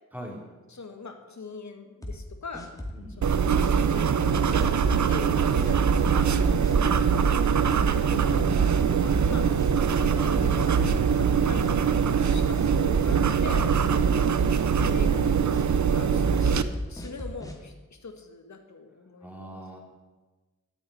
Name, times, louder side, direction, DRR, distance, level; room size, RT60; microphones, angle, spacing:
voice 1, 0.1-0.5 2.9-3.3 19.2-19.8, equal, 5° right, -1 dB, 3.8 m, -42 dB
voice 2, 0.7-2.7 3.2-9.6 9.9-14.4 14.9-15.4 15.9-16.6 16.9-19.6, left 4 dB, 70° left, 5 dB, 1.8 m, -43 dB
sound 1, 2.0-3.1 3.6-3.7 4.3-5.1 5.6-5.7 6.1-6.4 6.6-7.1 7.6-7.8 8.4-10.3 10.5-11.3 11.6-11.7 12.3-13.7 14.0-14.3 14.5-15.0 15.5-15.7 16.2-17.6, left 1 dB, 10° left, 2.3 m, -38 dB
sound 2, 3.2-16.6, right 6 dB, 70° right, 0.7 m, -23 dB
9.6 x 8.7 x 9.6 m, 1.2 s
wide cardioid pair, 65°, 29 cm